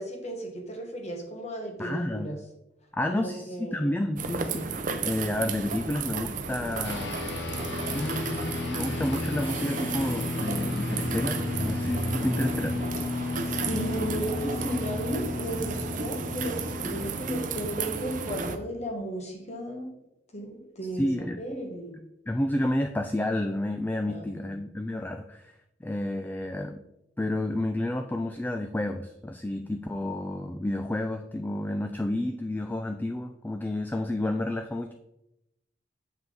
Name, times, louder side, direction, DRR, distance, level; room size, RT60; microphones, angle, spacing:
voice 1, 0.0-2.4 3.1-3.9 13.2-19.9 20.3-21.1 21.4-22.0 24.1-24.5, right 1 dB, 40° left, 2 dB, 1.5 m, -35 dB
voice 2, 1.8-2.3 2.9-7.5 7.9-12.8 20.9-21.4 22.3-25.5 25.8-26.8 27.2-34.9, left 1 dB, 10° left, 6 dB, 0.3 m, -30 dB
sound 1, 4.2-18.6, right 4 dB, 45° right, 0.6 m, -33 dB
sound 2, 6.8-18.5, left 3 dB, 70° left, 0.8 m, -34 dB
7.3 x 5.6 x 3.9 m, 0.85 s
head